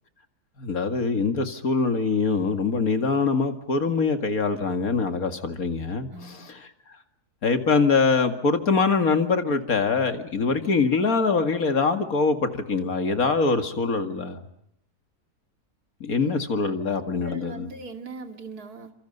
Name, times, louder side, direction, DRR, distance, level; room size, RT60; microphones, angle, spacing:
voice 1, 0.6-6.5 7.4-14.4 16.0-17.7, left 4 dB, 65° left, 7 dB, 2.5 m, -23 dB
voice 2, 6.1-6.6 16.1-16.4 17.1-18.9, right 4 dB, 75° right, 6 dB, 2.7 m, -40 dB
30.0 x 27.0 x 5.4 m, 0.72 s
omnidirectional pair, 1.6 m